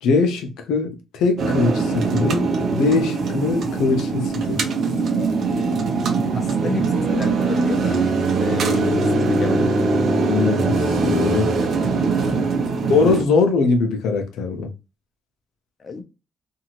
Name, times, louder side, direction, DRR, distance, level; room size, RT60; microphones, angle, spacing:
voice 1, 0.0-4.6 10.2-11.5 12.9-14.7, left 4 dB, 85° left, 0.7 m, -21 dB
sound 1, 1.4-13.2, right 3 dB, 60° right, 0.8 m, -21 dB
voice 2, 6.3-8.0 8.4-9.6 12.5-12.8 15.8-16.0, left 4 dB, 40° left, 0.8 m, -31 dB
2.7 x 2.5 x 2.9 m
cardioid pair, 90°, 0 cm